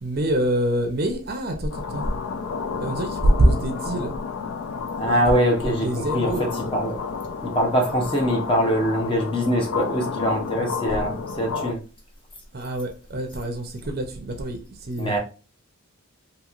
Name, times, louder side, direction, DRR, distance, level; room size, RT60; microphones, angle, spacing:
voice 1, 0.0-2.1 2.8-4.1 5.0-5.2 5.6-6.5 12.5-15.1, right 1 dB, 45° right, 0.5 m, -25 dB
sound 1, 1.7-11.7, left 5 dB, 75° left, 0.4 m, -31 dB
voice 2, 5.0-7.0 7.4-11.8 15.0-15.2, equal, 25° left, 0.7 m, -23 dB
3.0 x 2.7 x 2.4 m
head